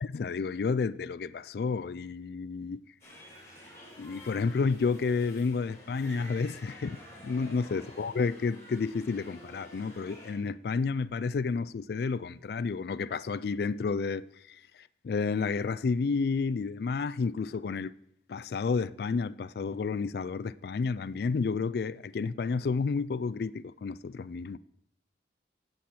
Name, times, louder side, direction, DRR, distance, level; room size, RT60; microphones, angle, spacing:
voice 1, 0.0-2.8 4.0-7.0 7.2-14.6 15.0-17.9 18.3-24.6, left 4 dB, 55° left, 0.3 m, -31 dB
sound 1, 3.0-10.3, equal, 15° left, 4.0 m, -50 dB
16.5 x 7.7 x 4.3 m
head